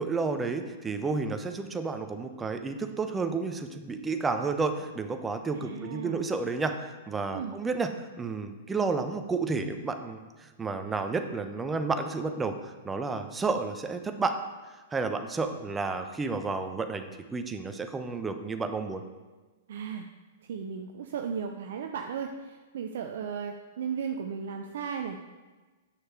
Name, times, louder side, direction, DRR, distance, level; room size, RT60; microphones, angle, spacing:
voice 1, 0.0-7.9 8.2-14.4 14.9-19.0, right 4 dB, 15° right, 7 dB, 0.8 m, -31 dB
voice 2, 5.5-6.3 7.3-7.6 19.7-20.1 20.5-25.2, right 6 dB, 60° right, 4 dB, 0.6 m, -35 dB
8.4 x 6.4 x 4.6 m, 1.3 s
figure-of-eight pair, 110°, 0 cm